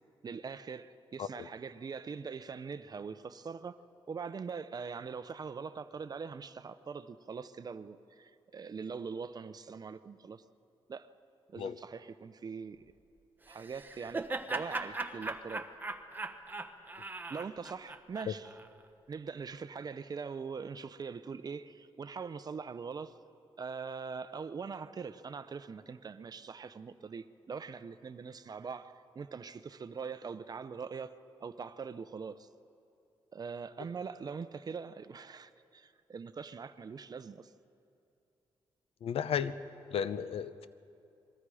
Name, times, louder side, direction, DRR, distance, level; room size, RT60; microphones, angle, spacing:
voice 1, 0.2-3.8 4.1-10.4 10.9-11.1 11.5-12.8 13.5-15.6 17.3-18.5 19.1-23.2 23.6-31.1 31.4-32.5 33.3-37.5, right 5 dB, 40° right, 12 dB, 0.7 m, -42 dB
Laughter, 13.5-18.7, right 3 dB, 20° right, 1.1 m, -39 dB
voice 2, 39.0-39.5 39.9-40.7, left 8 dB, 80° left, 13 dB, 0.7 m, -34 dB
27.0 x 22.0 x 5.0 m, 2.6 s
cardioid pair, 110°, 10 cm